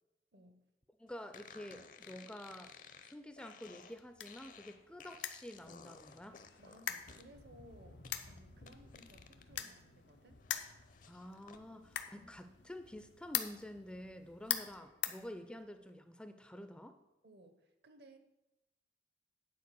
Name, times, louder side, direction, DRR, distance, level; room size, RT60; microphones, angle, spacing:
voice 1, 0.3-0.6 6.6-10.4 11.7-11.8 12.2-12.4 17.2-18.2, right 1 dB, 65° right, 8 dB, 0.9 m, -60 dB
voice 2, 1.0-2.7 3.0-6.4 11.1-11.8 12.1-17.0, left 1 dB, 5° left, 8 dB, 0.4 m, -49 dB
sound 1, 1.3-9.6 10.0-11.6, left 5 dB, 50° left, 0.6 m, -57 dB
sound 2, 3.6-15.9, left 10 dB, 85° left, 0.7 m, -45 dB
9.4 x 4.4 x 6.7 m, 0.99 s
head